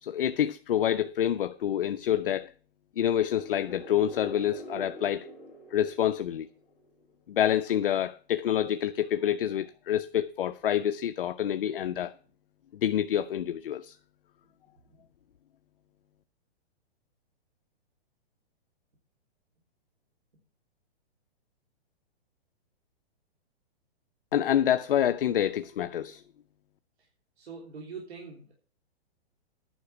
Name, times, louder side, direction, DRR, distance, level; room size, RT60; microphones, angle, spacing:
voice 1, 0.0-2.5 3.0-5.3 5.7-6.5 7.3-12.1 12.8-14.0 24.3-26.2, left 10 dB, 60° left, 0.6 m, -27 dB
sound 1, 3.0-6.8, equal, ahead, 1.8 m, -45 dB
voice 2, 27.4-28.5, right 5 dB, 80° right, 3.4 m, -43 dB
10.0 x 5.9 x 7.7 m
hypercardioid pair, 180°, 32 cm